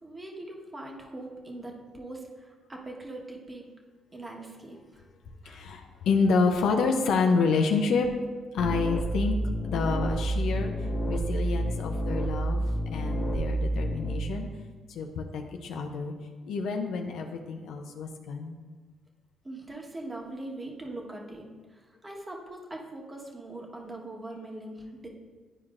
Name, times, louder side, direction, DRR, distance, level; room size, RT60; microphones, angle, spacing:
voice 1, 0.0-3.7 4.1-5.1 5.4-5.7 19.4-25.1, right 2 dB, 20° right, 0 dB, 1.2 m, -41 dB
voice 2, 5.4-8.1 8.5-9.4 9.7-14.5 14.9-16.1 16.5-18.6, left 4 dB, 80° left, 3 dB, 0.6 m, -28 dB
sound 1, 8.6-14.2, right 1 dB, 15° left, 1.0 m, -29 dB
11.0 x 4.6 x 2.5 m, 1.4 s
cardioid pair, 90°, 0 cm